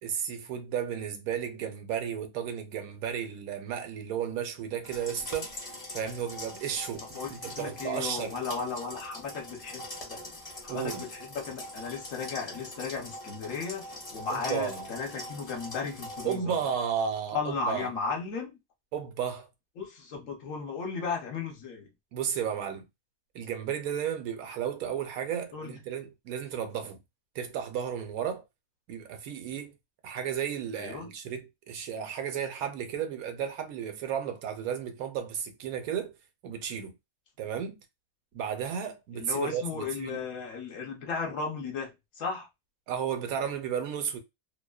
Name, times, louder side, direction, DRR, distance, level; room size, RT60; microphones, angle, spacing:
voice 1, 0.0-8.3 10.7-11.1 14.3-14.9 16.2-17.9 18.9-19.5 22.1-22.9 23.3-27.0 27.3-28.4 28.9-29.7 30.0-36.1 36.4-36.9 37.4-37.8 38.3-40.2 42.9-44.2, right 8 dB, 80° right, 1.1 m, -33 dB
sound 1, 4.8-16.3, left 1 dB, 35° left, 0.6 m, -43 dB
voice 2, 7.1-10.2 10.6-13.8 14.1-16.6 17.3-18.5 19.8-21.9 25.5-25.8 30.7-31.1 39.1-42.5, left 5 dB, 65° left, 1.1 m, -35 dB
2.7 x 2.1 x 2.2 m
omnidirectional pair, 1.5 m